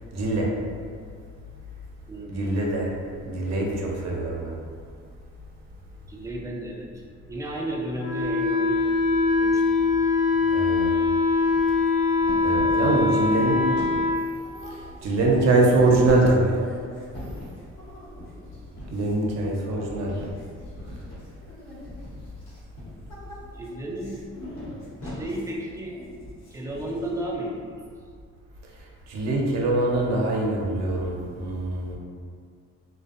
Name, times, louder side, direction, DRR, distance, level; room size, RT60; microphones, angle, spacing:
voice 1, 0.1-0.5 2.3-2.9 3.2-4.5 10.5-10.9 12.4-13.7 14.7-16.6 18.9-20.1 29.1-32.0, right 2 dB, 60° right, -2 dB, 0.6 m, -23 dB
voice 2, 2.1-2.6 6.1-6.9 7.3-8.9 9.3-10.1 18.2-18.4 23.5-24.2 25.0-26.0 26.5-27.7, right 1 dB, 10° right, -2 dB, 0.3 m, -33 dB
Wind instrument woodwind instrument, 8.0-14.2, left 3 dB, 40° left, 0.5 m, -22 dB
sound 1, 10.3-10.7 11.0-11.9 12.2-27.4, left 1 dB, 65° left, 0.9 m, -41 dB
2.5 x 2.1 x 2.4 m, 2.1 s
cardioid pair, 90°, 30 cm